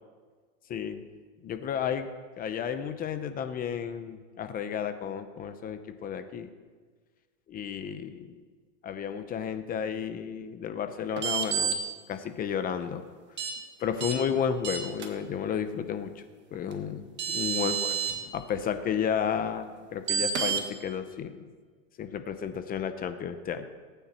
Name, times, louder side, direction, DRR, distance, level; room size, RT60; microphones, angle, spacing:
voice 1, 0.7-1.0 1.4-2.1 2.4-6.5 7.5-8.4 8.8-13.0 13.8-16.2 16.5-21.4 22.0-23.7, left 8 dB, 25° left, 10 dB, 0.7 m, -32 dB
sound 1, 11.2-11.7 13.4-13.5 14.0-14.1 14.6-15.1 16.7-16.8 17.2-18.1 20.1-20.6, right 8 dB, 30° right, 1.6 m, -29 dB
19.0 x 9.1 x 4.4 m, 1.5 s
supercardioid pair, 145°, 37 cm